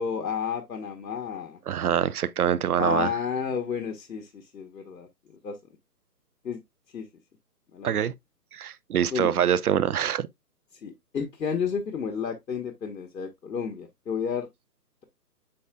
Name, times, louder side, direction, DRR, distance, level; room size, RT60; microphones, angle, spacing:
voice 1, 0.0-1.6 2.8-5.6 6.4-6.6 6.9-7.1 7.7-8.0 9.1-9.3 10.8-14.5, left 6 dB, 90° left, 1.5 m, -31 dB
voice 2, 1.7-3.1 7.8-8.1 8.5-10.3, right 9 dB, 65° right, 0.6 m, -24 dB
8.4 x 4.9 x 2.3 m
hypercardioid pair, 165°, 49 cm